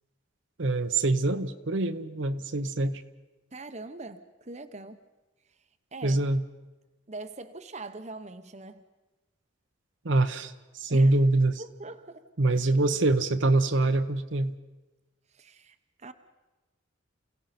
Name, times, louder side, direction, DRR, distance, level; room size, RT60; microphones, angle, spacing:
voice 1, 0.6-3.0 6.0-6.4 10.0-11.6 12.4-14.5, right 2 dB, 65° right, 9 dB, 0.9 m, -24 dB
voice 2, 3.5-5.0 5.9-6.2 7.1-8.8 10.9-11.1 11.6-12.6 15.3-16.1, right 2 dB, 35° right, 9 dB, 0.9 m, -42 dB
28.5 x 17.5 x 5.9 m, 1.1 s
head